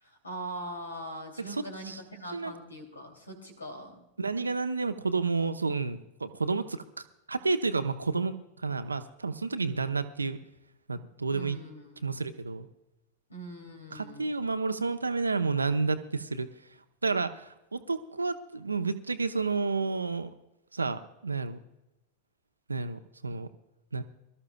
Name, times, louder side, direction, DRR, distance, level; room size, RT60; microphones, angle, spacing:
voice 1, 0.0-4.0 11.3-12.1 13.3-14.3, right 1 dB, 80° left, 4 dB, 2.8 m, -42 dB
voice 2, 1.4-2.0 2.3-2.5 4.2-6.8 7.3-8.3 8.6-10.4 10.9-11.6 12.0-12.7 13.9-16.5 17.0-20.3 20.7-21.6 22.7-23.5 23.9-24.0, right 4 dB, 80° right, 10 dB, 0.8 m, -30 dB
22.5 x 13.5 x 2.3 m, 0.92 s
figure-of-eight pair, 90°, 0 cm